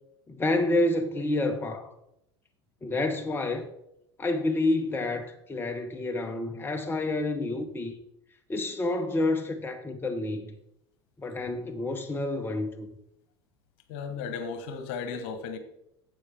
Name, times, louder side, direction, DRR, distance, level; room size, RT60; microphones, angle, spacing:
voice 1, 0.3-1.9 2.8-3.7 4.2-7.9 8.5-10.6 11.2-12.9, left 2 dB, 15° left, 0.9 m, -29 dB
voice 2, 13.9-15.6, left 5 dB, 55° left, 1.4 m, -35 dB
11.5 x 8.1 x 3.6 m
figure-of-eight pair, 75°, 14 cm